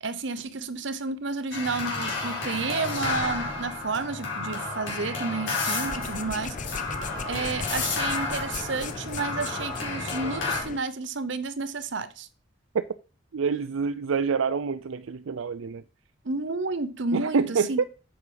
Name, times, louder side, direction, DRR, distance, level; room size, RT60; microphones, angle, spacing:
voice 1, 0.0-6.8 7.3-12.3 16.2-17.8, right 3 dB, 65° right, 0.8 m, -31 dB
sound 1, 1.5-10.6, left 3 dB, 70° left, 4.4 m, -31 dB
sound 2, 5.8-10.8, left 4 dB, 40° left, 0.7 m, -38 dB
voice 2, 13.3-15.8 17.1-17.8, right 5 dB, 85° right, 0.5 m, -27 dB
8.6 x 6.4 x 5.0 m
head